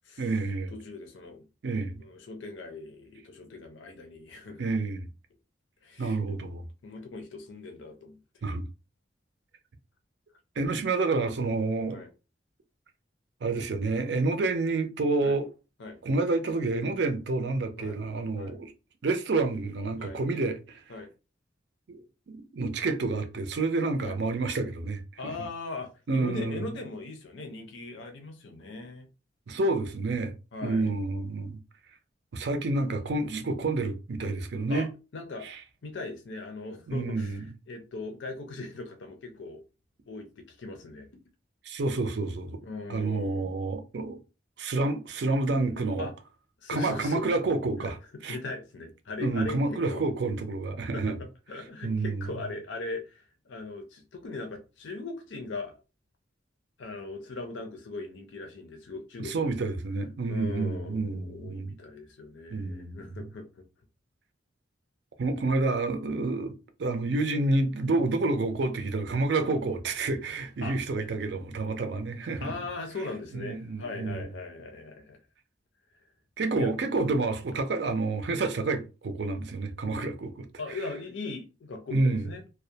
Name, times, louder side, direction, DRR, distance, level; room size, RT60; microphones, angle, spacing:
voice 1, 0.2-0.7 1.6-2.0 4.6-5.1 6.0-6.6 8.4-8.6 10.6-12.0 13.4-15.5 16.0-18.7 19.0-20.8 21.9-22.0 22.3-25.3 26.1-26.6 29.5-30.3 30.6-31.6 32.3-34.9 35.4-35.6 36.9-37.5 41.7-42.6 42.9-44.2 44.6-46.1 46.7-48.0 48.2-48.4 49.2-51.2 51.8-52.3 59.2-61.8 62.5-63.1 65.2-66.5 66.8-72.5 73.3-74.3 76.4-80.8 81.9-82.3, right 3 dB, 60° right, 0.4 m, -29 dB
voice 2, 0.7-1.4 2.0-4.6 5.8-6.3 6.8-8.2 11.9-12.1 15.2-15.4 15.8-16.0 17.8-18.0 18.4-18.6 20.0-20.2 20.9-21.1 24.0-24.2 25.2-29.1 30.5-31.0 34.7-35.6 35.8-39.6 40.1-41.1 42.6-43.5 46.0-46.1 46.6-47.2 47.8-47.9 48.3-50.0 50.9-55.7 56.8-59.5 60.3-63.6 70.6-70.8 72.4-75.2 76.6-76.7 80.6-82.4, left 3 dB, 75° left, 0.5 m, -39 dB
2.3 x 2.1 x 2.7 m
head